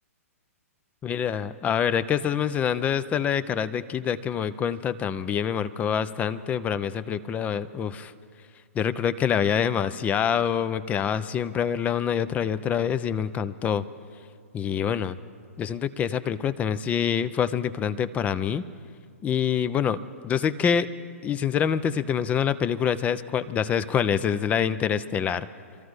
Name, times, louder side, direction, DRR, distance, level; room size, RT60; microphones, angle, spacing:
voice 1, 1.0-8.1 8.7-13.8 14.5-15.2 15.6-18.6 19.2-20.9 21.2-25.5, left 8 dB, 20° left, 14 dB, 0.5 m, -26 dB
26.5 x 13.5 x 3.2 m, 2.1 s
figure-of-eight pair, 120°, 8 cm